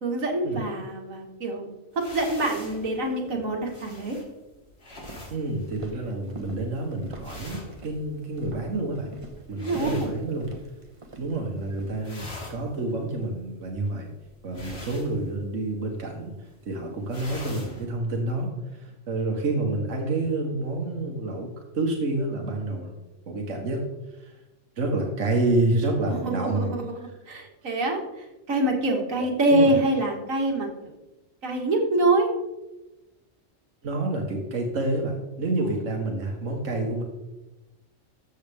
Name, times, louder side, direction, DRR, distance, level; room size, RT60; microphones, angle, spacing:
voice 1, 0.0-1.7 2.0-4.2 6.0-6.1 9.5-10.2 26.1-30.7 31.4-32.3 35.6-35.8, right 2 dB, 90° right, 1 dB, 2.1 m, -25 dB
sound 1, 1.9-10.9 11.2-11.6 11.9-17.8, left 1 dB, 50° left, 2.5 m, -44 dB
Walk footsteps, 4.9-12.0, right 2 dB, 25° right, 1.1 m, -44 dB
voice 2, 5.3-9.1 9.5-10.5 11.2-14.1 14.4-21.5 21.7-22.9 23.3-23.8 24.2-24.4 24.8-27.1 29.2-29.3 29.5-29.8 33.8-37.0, right 2 dB, 70° right, 1 dB, 1.6 m, -28 dB
13.5 x 7.2 x 3.5 m, 1.0 s
omnidirectional pair, 1.3 m